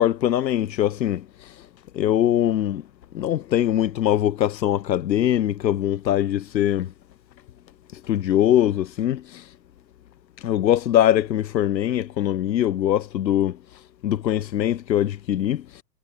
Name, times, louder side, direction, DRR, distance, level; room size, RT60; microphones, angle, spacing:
voice 1, 0.0-1.7 1.9-2.9 3.1-6.9 7.9-9.5 10.4-13.6 14.0-15.8, left 11 dB, 85° left, 1.5 m, -22 dB
hypercardioid pair, 165°, 50 cm